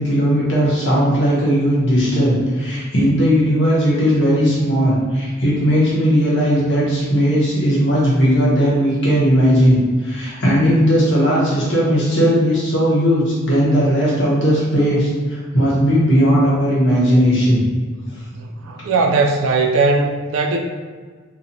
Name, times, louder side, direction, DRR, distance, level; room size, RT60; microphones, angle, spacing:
voice 1, 0.0-17.6, equal, 60° left, -6 dB, 0.9 m, -17 dB
voice 2, 18.3-20.6, right 3 dB, 80° right, 3 dB, 0.3 m, -18 dB
2.9 x 2.3 x 2.6 m, 1.5 s
head